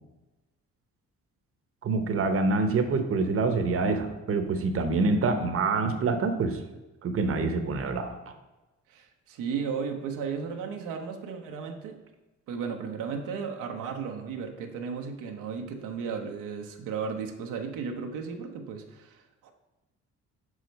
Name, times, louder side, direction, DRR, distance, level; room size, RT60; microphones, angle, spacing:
voice 1, 1.8-6.6 7.0-8.1, right 3 dB, 50° right, 7 dB, 0.9 m, -26 dB
voice 2, 8.9-12.0 12.5-19.5, right 6 dB, 90° right, 3 dB, 0.8 m, -35 dB
5.6 x 4.9 x 5.2 m, 1.1 s
cardioid pair, 90°, 30 cm